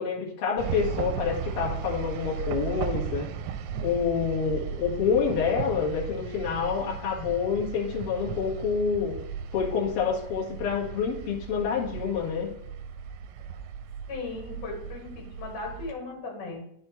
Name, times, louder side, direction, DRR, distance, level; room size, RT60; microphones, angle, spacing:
voice 1, 0.0-3.3 3.8-9.1 9.5-12.5, left 6 dB, 50° left, -4 dB, 2.3 m, -27 dB
sound 1, 0.6-15.9, right 8 dB, 80° right, 1.8 m, -36 dB
voice 2, 14.1-16.6, left 3 dB, 85° left, -1 dB, 3.6 m, -37 dB
12.5 x 4.3 x 3.1 m, 0.74 s
omnidirectional pair, 3.6 m